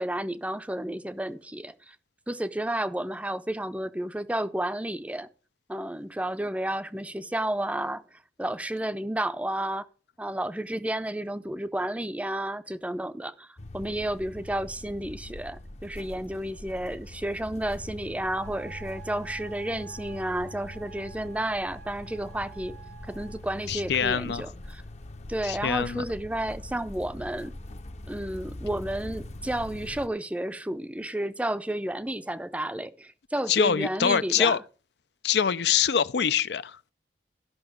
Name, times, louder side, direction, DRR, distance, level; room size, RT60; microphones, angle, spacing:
voice 1, 0.0-2.0 2.3-5.3 5.7-9.8 10.2-13.5 13.7-22.8 23.1-24.8 25.3-27.6 28.1-34.6, right 1 dB, 5° right, 0.5 m, -31 dB
sound 1, 13.6-30.1, left 1 dB, 40° left, 0.7 m, -42 dB
Wind instrument woodwind instrument, 18.3-23.5, right 10 dB, 55° right, 0.6 m, -49 dB
voice 2, 23.7-24.5 25.4-26.0 33.5-34.6 35.2-36.8, left 7 dB, 70° left, 0.5 m, -24 dB
12.5 x 5.9 x 6.2 m
head